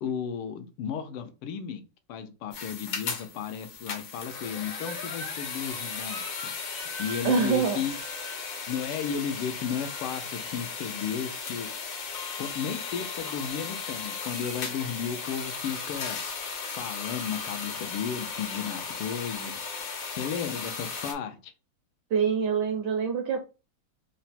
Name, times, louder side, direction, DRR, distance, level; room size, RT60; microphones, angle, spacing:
voice 1, 0.0-1.8 2.1-6.5 7.0-7.9 8.7-11.7 12.4-16.2 16.8-19.5 20.1-21.5, left 7 dB, 85° left, 1.6 m, -34 dB
sound 1, 2.5-21.1, left 5 dB, 65° left, 0.8 m, -36 dB
voice 2, 7.2-7.8 22.1-23.4, right 6 dB, 75° right, 1.0 m, -25 dB
4.2 x 2.1 x 4.1 m
omnidirectional pair, 2.4 m